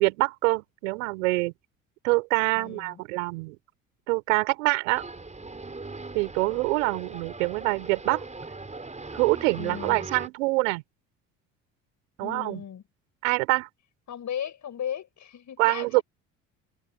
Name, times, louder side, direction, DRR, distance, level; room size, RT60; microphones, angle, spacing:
voice 1, 0.0-1.5 2.0-3.6 4.1-5.0 6.1-8.2 9.1-10.8 12.2-12.6 13.2-13.7 15.6-16.0, right 25 dB, 75° right, 4.6 m, -25 dB
voice 2, 2.6-3.0 9.6-10.1 12.2-12.8 14.1-16.0, left 9 dB, 45° left, 7.0 m, -36 dB
sound 1, 4.9-10.3, right 3 dB, 15° right, 6.2 m, -39 dB
hypercardioid pair, 60°, 39 cm